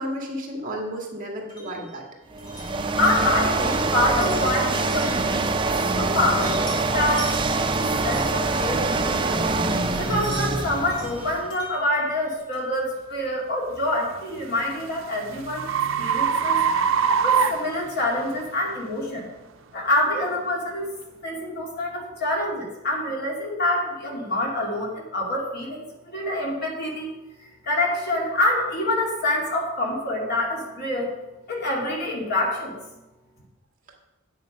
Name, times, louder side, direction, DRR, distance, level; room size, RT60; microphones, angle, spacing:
voice 1, 0.0-2.0, equal, 40° right, 0 dB, 2.0 m, -32 dB
sound 1, 1.5-6.1 6.4-9.3 9.7-12.8, equal, 20° left, 3.4 m, -43 dB
sound 2, 2.3-11.5, right 3 dB, 20° right, 0.6 m, -24 dB
voice 2, 3.0-9.5 10.0-15.7 16.0-16.6 17.2-19.3 19.7-20.9 21.2-27.1 27.4-31.1 31.5-32.8, left 1 dB, 50° left, -2 dB, 2.6 m, -26 dB
sound 3, 9.6-9.7 10.3-10.5 11.1-11.3 14.0-18.4, right 6 dB, 65° right, 0.6 m, -24 dB
9.5 x 8.7 x 5.2 m, 1.0 s
head